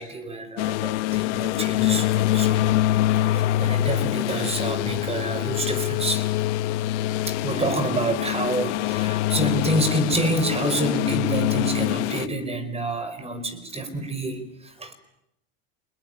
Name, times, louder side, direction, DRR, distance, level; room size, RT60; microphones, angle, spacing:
voice 1, 0.0-2.8 3.2-6.2 7.3-14.9, right 2 dB, 15° right, 12 dB, 4.9 m, -28 dB
sound 1, 0.6-12.3, left 15 dB, 70° left, 1.3 m, -24 dB
25.5 x 21.0 x 9.8 m, 0.82 s
supercardioid pair, 120°, 36 cm